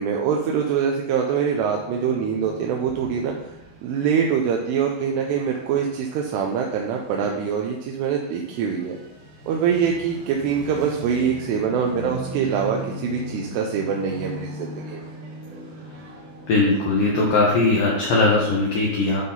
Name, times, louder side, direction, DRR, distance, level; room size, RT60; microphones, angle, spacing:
voice 1, 0.0-3.3 3.8-9.0 9.5-15.0, right 7 dB, 80° right, 1 dB, 2.6 m, -24 dB
sound 1, 1.5-17.6, right 1 dB, 65° right, 2.0 m, -39 dB
voice 2, 16.5-19.2, left 3 dB, 75° left, -4 dB, 2.0 m, -19 dB
11.0 x 3.7 x 3.9 m, 0.88 s
omnidirectional pair, 5.1 m